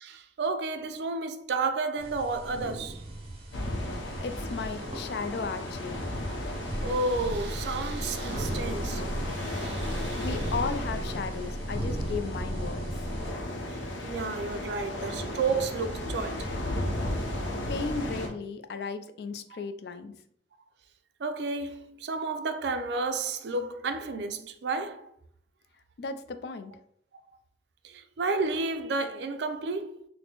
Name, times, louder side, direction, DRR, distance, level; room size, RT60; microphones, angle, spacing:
voice 1, 0.0-3.0 6.2-6.4 6.8-10.4 14.0-16.5 19.5-19.6 21.2-25.1 27.8-30.1, right 3 dB, 65° right, 0.3 m, -32 dB
sound 1, 2.0-13.3, right 1 dB, 30° right, 0.7 m, -37 dB
sound 2, 3.5-18.3, left 1 dB, 90° left, 0.7 m, -35 dB
voice 2, 4.2-6.0 10.2-13.0 17.7-20.2 26.0-26.7, left 4 dB, 60° left, 0.3 m, -35 dB
4.2 x 2.1 x 2.9 m
head